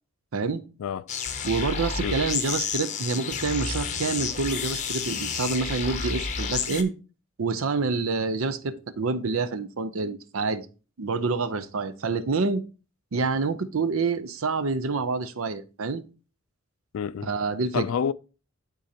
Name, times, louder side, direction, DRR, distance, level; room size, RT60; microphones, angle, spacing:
sound 1, 1.1-6.8, left 6 dB, 35° left, 0.7 m, -30 dB
voice 1, 1.4-6.9 7.4-10.7 11.0-12.6 13.1-16.0 17.2-17.9, right 4 dB, 70° right, 0.6 m, -27 dB
voice 2, 16.9-17.3 17.7-18.1, left 7 dB, 70° left, 0.3 m, -28 dB
11.5 x 3.9 x 2.8 m
head